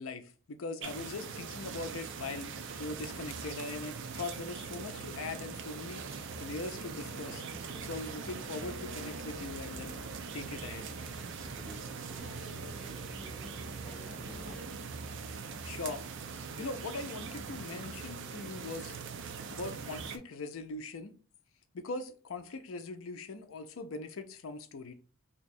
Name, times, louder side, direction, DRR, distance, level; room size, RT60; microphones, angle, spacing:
voice 1, 0.0-2.5 2.8-7.4 7.9-10.0 10.3-10.9 15.6-16.0 16.6-19.0 19.5-21.1 21.7-25.0, left 3 dB, 70° left, 0.5 m, -41 dB
sound 1, 0.8-20.2, right 5 dB, 60° right, 0.4 m, -42 dB
sound 2, 5.7-18.3, equal, ahead, 0.3 m, -54 dB
voice 2, 12.1-13.7 14.3-14.7, equal, 90° right, 1.5 m, -53 dB
2.8 x 2.3 x 4.1 m
head